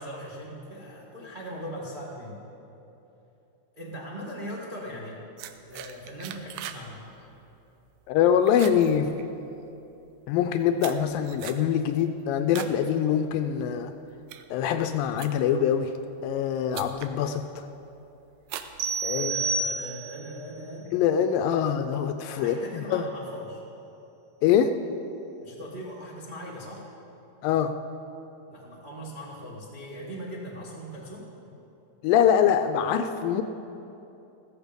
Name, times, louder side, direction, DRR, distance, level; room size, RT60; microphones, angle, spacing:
voice 1, 0.0-2.4 3.7-5.2 5.7-7.0 19.1-20.9 22.3-23.6 25.4-26.8 28.5-31.3, equal, 55° right, -5 dB, 0.5 m, -39 dB
sound 1, 5.4-6.9 7.2-7.5 7.9-8.2 8.5-9.7 10.3-12.8 13.2-13.5 14.0-15.7 16.4-16.5 16.7-17.2 17.6-18.0 18.4-19.4, right 11 dB, 90° right, 2.5 m, -41 dB
voice 2, 8.1-9.1 10.3-13.9 14.5-15.9 16.2-17.7 19.0-19.3 20.9-23.1 24.4-24.7 27.4-27.7 32.0-33.4, left 8 dB, 80° left, 8 dB, 2.1 m, -24 dB
sound 2, 18.8-20.3, right 3 dB, 75° right, 2.5 m, -29 dB
14.5 x 14.0 x 5.2 m, 2.9 s
omnidirectional pair, 4.3 m